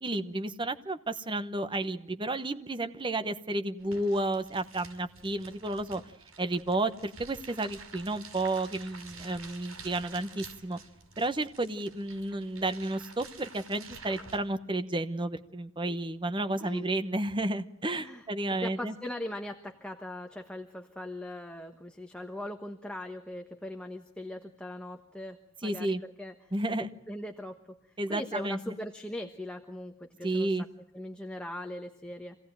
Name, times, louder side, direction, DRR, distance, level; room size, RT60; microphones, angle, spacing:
voice 1, 0.0-6.0 6.4-10.8 11.2-18.9 25.6-26.0 26.5-26.9 28.0-28.7 30.2-30.6, right 2 dB, 25° right, 9 dB, 1.0 m, -32 dB
sound 1, 3.8-14.4, right 4 dB, 80° right, 5.6 m, -49 dB
voice 2, 17.9-25.4 25.6-26.5 27.1-27.8 28.1-30.5 30.9-32.4, left 1 dB, 5° left, 4 dB, 1.3 m, -40 dB
26.5 x 17.5 x 9.0 m, 0.78 s
head